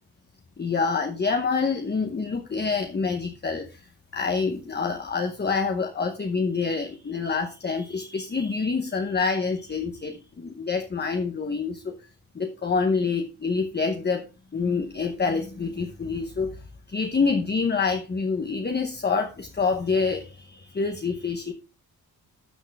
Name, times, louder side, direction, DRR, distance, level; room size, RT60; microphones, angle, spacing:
voice 1, 0.6-11.9 12.3-14.2 14.5-21.5, left 4 dB, 25° left, 5 dB, 0.9 m, -27 dB
12.0 x 6.3 x 3.4 m, 0.31 s
wide cardioid pair, 145°, 38 cm